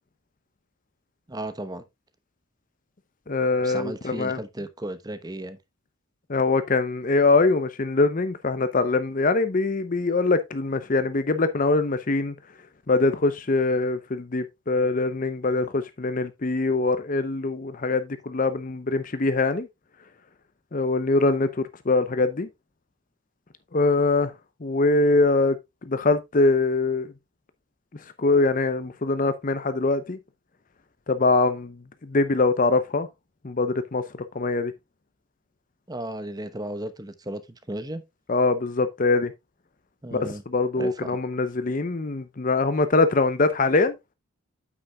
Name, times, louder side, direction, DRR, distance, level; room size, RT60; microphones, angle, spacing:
voice 1, 1.3-1.8 3.6-5.6 35.9-37.4 37.7-38.0 40.0-40.4 40.8-41.2, right 1 dB, 20° right, 1.0 m, -34 dB
voice 2, 3.3-4.4 6.3-12.3 12.9-19.7 20.7-22.5 23.7-24.3 24.6-25.6 25.9-27.1 28.2-30.2 31.1-33.1 33.4-34.0 34.3-34.7 38.3-39.3 40.1-43.9, left 3 dB, 40° left, 0.7 m, -23 dB
8.8 x 8.5 x 2.3 m
head